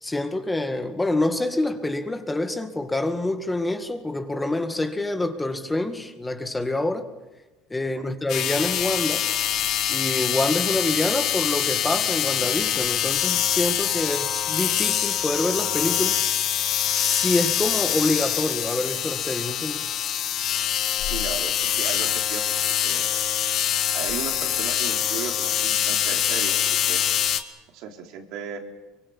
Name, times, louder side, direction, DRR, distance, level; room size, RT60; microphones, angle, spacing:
voice 1, 0.0-7.1 7.7-9.3 9.9-16.2 16.9-19.9, left 2 dB, 10° left, 1.9 m, -26 dB
sound 1, 8.3-27.4, left 10 dB, 50° left, 1.9 m, -24 dB
voice 2, 21.0-22.6 22.8-23.1 23.9-27.0 27.7-28.6, right 7 dB, 65° right, 3.8 m, -36 dB
24.0 x 23.0 x 7.3 m
supercardioid pair, 120°, 0 cm